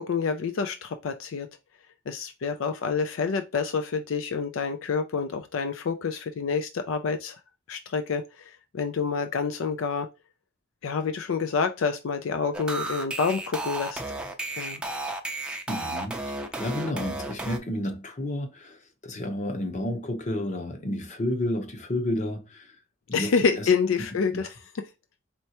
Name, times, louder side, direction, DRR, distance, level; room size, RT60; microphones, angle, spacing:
voice 1, 0.0-1.5 2.1-7.4 7.7-10.1 10.8-14.0 14.6-14.8 23.1-24.5, left 5 dB, 75° left, 0.4 m, -28 dB
sound 1, 12.5-17.6, right 2 dB, 5° right, 0.5 m, -33 dB
voice 2, 15.7-22.7 23.1-23.7 24.3-24.5, left 1 dB, 35° left, 0.8 m, -31 dB
4.3 x 3.3 x 2.9 m
head